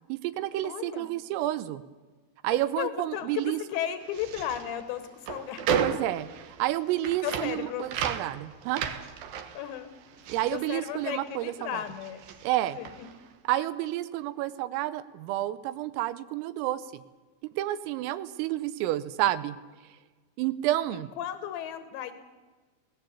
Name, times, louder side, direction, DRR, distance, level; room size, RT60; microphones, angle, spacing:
voice 1, 0.1-1.8 2.4-3.6 5.8-6.3 6.6-8.9 10.3-11.8 12.4-12.8 13.5-16.8 17.6-19.6 20.4-21.1, right 14 dB, 85° right, 14 dB, 3.6 m, -30 dB
voice 2, 0.6-1.1 2.5-5.8 7.2-7.9 9.6-9.9 10.3-12.2 12.7-13.1 21.2-22.1, left 11 dB, 70° left, 10 dB, 3.4 m, -35 dB
sound 1, 4.0-11.5 11.8-13.2, right 7 dB, 65° right, 2.5 m, -34 dB
24.0 x 18.5 x 8.4 m, 1.3 s
omnidirectional pair, 5.9 m